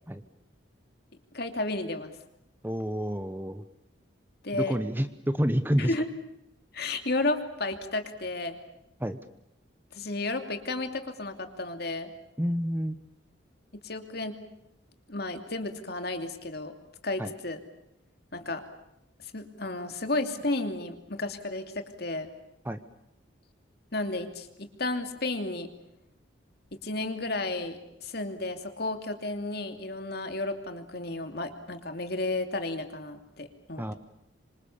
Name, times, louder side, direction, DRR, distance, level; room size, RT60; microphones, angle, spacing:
voice 1, 1.3-2.1 4.4-4.8 5.8-6.1 6.7-8.6 9.9-12.1 13.8-14.3 15.1-16.7 17.0-17.6 18.3-18.6 19.2-22.3 23.9-25.7 26.7-34.0, left 2 dB, 50° left, 7 dB, 2.8 m, -32 dB
voice 2, 2.6-3.6 4.5-5.9 9.0-9.2 12.4-13.0 17.2-17.3 22.6-22.8 33.8-33.9, equal, 10° right, 11 dB, 0.9 m, -29 dB
26.0 x 26.0 x 7.2 m, 0.83 s
head